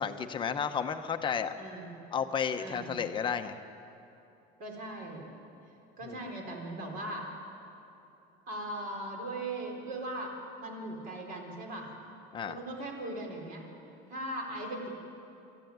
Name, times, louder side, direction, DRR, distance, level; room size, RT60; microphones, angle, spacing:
voice 1, 0.0-1.5 2.1-3.6 6.0-6.1 12.3-12.6, left 7 dB, 25° left, 7 dB, 0.9 m, -32 dB
voice 2, 1.6-2.0 2.6-3.0 4.6-5.4 6.0-7.3 8.5-11.9 12.5-13.7 14.1-14.9, right 1 dB, 45° right, 2 dB, 4.2 m, -39 dB
26.5 x 14.5 x 9.5 m, 2.8 s
cardioid pair, 175°, 21 cm